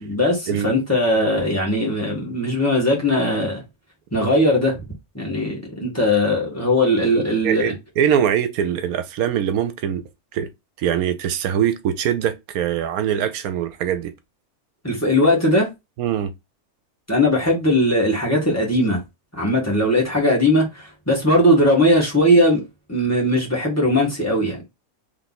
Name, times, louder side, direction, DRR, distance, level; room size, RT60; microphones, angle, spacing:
voice 1, 0.0-3.6 4.1-4.8 5.1-7.7 14.8-15.7 17.1-19.0 19.3-22.6 22.9-24.6, left 1 dB, 10° left, 1.6 m, -19 dB
voice 2, 7.1-10.0 10.3-10.5 10.8-14.1 16.0-16.3, right 9 dB, 80° right, 1.1 m, -22 dB
3.3 x 3.0 x 4.1 m
omnidirectional pair, 1.5 m